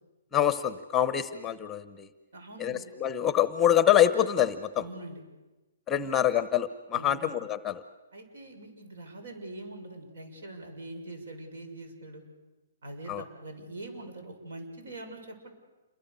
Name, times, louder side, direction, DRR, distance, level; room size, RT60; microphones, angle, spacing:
voice 1, 0.3-2.1 2.6-4.9 5.9-7.8 13.1-13.2, left 11 dB, 10° left, 13 dB, 0.9 m, -25 dB
voice 2, 2.3-2.9 4.8-5.2 6.0-6.1 6.9-7.4 8.1-12.2 12.8-15.5, right 2 dB, 70° right, 5 dB, 6.8 m, -43 dB
28.0 x 23.0 x 6.9 m, 1.1 s
hypercardioid pair, 160°, 0 cm